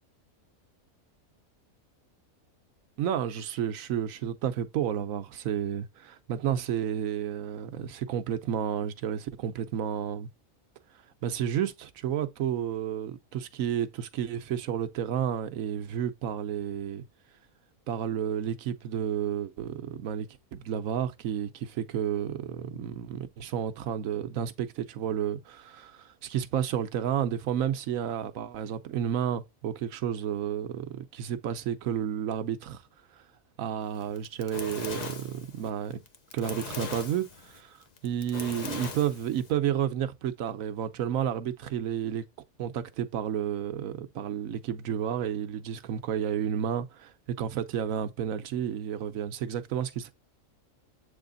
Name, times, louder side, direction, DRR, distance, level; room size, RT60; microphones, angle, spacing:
voice 1, 3.0-10.3 11.2-17.0 17.9-32.8 33.6-36.0 36.3-37.8 38.0-42.2 42.6-50.1, right 9 dB, 75° right, 1.1 m, -31 dB
Fire, 34.0-39.5, left 5 dB, 40° left, 0.7 m, -40 dB
7.8 x 3.5 x 3.9 m
omnidirectional pair, 1.5 m